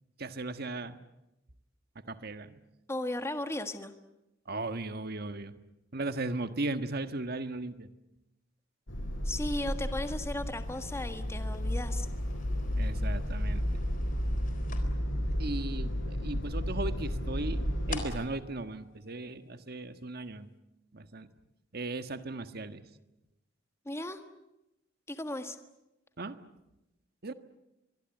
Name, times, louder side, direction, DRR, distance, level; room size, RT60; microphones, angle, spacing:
voice 1, 0.2-1.0 2.1-2.6 4.5-5.6 5.9-7.9 12.8-13.8 15.4-20.5 20.9-21.3 21.7-22.8 26.2-26.4 27.2-27.3, right 2 dB, 55° right, 10 dB, 1.5 m, -37 dB
voice 2, 2.9-3.9 9.3-12.1 23.9-24.2 25.1-25.6, left 1 dB, 15° left, 8 dB, 1.6 m, -36 dB
sound 1, 8.9-18.1, equal, 90° left, 6.4 m, -32 dB
sound 2, 9.4-19.8, left 4 dB, 45° left, 4.0 m, -51 dB
24.5 x 23.0 x 9.1 m, 0.92 s
head